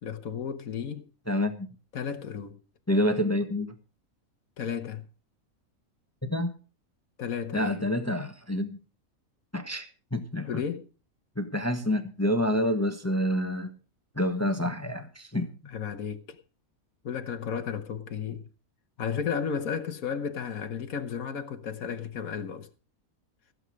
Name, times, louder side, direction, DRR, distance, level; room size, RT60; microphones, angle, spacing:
voice 1, 0.0-1.1 1.9-2.6 4.6-5.1 7.2-7.9 10.4-10.9 15.6-16.4 17.0-18.5 19.0-22.7, left 7 dB, 80° left, 1.6 m, -33 dB
voice 2, 1.3-1.7 2.9-3.7 6.2-6.5 7.5-8.8 9.5-10.5 11.4-13.7 14.2-15.5, left 1 dB, 10° left, 1.2 m, -28 dB
16.0 x 7.8 x 6.4 m
omnidirectional pair, 1.5 m